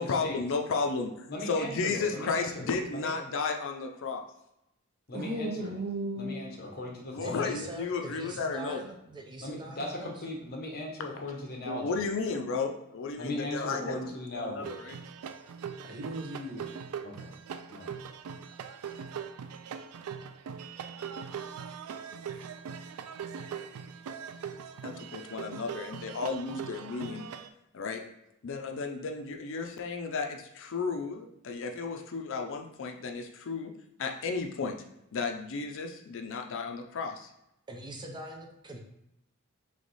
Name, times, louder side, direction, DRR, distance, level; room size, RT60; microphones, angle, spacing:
voice 1, 0.0-4.2 7.1-8.8 11.7-14.0 14.3-14.9 24.8-27.2 27.7-28.0 28.4-33.7 34.0-34.8 35.1-37.3, left 4 dB, 60° left, 4 dB, 0.5 m, -33 dB
voice 2, 1.3-2.7 2.9-3.1 5.1-5.7 6.2-7.7 9.4-12.0 13.2-14.7 17.0-17.3 17.7-18.0, left 1 dB, 45° left, 0 dB, 0.9 m, -38 dB
voice 3, 5.1-7.2 13.8-14.1 15.8-16.7, right 1 dB, 45° right, 0 dB, 0.8 m, -37 dB
voice 4, 7.2-10.2 37.7-38.8, right 2 dB, 20° right, 1 dB, 0.5 m, -43 dB
sound 1, 14.6-27.5, right 7 dB, 80° right, 0.3 m, -41 dB
3.4 x 3.2 x 4.0 m, 0.83 s
head